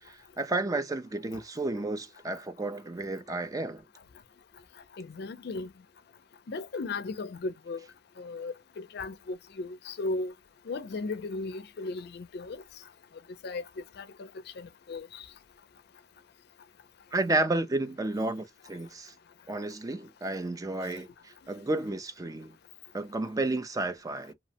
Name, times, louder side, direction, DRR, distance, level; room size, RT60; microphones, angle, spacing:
voice 1, 0.0-3.8 17.1-19.1 19.5-22.5 22.9-24.3, right 2 dB, 20° right, 0.4 m, -32 dB
voice 2, 5.0-5.7 6.5-7.8 8.2-10.3 10.7-12.6 13.4-13.6 14.0-14.3 14.6-15.2, left 3 dB, 60° left, 0.4 m, -36 dB
2.8 x 2.1 x 2.7 m
head